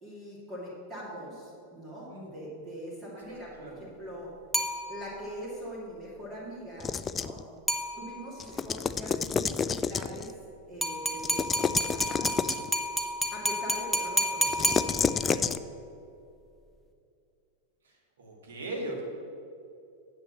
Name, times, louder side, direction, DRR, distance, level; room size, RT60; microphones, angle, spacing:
voice 1, 0.0-4.3 4.9-7.4 8.0-10.3 10.7-12.6 13.3-15.4, equal, 20° right, -8 dB, 2.6 m, -42 dB
sound 1, 4.5-5.4 7.7-8.4 10.8-15.4, equal, ahead, 1.0 m, -30 dB
sound 2, 6.8-7.4 8.4-10.3 11.2-12.7 14.5-15.6, left 6 dB, 20° left, 0.3 m, -29 dB
voice 2, 17.8-19.0, right 1 dB, 65° right, -1 dB, 2.0 m, -39 dB
9.3 x 6.9 x 6.2 m, 2.5 s
figure-of-eight pair, 90°, 0 cm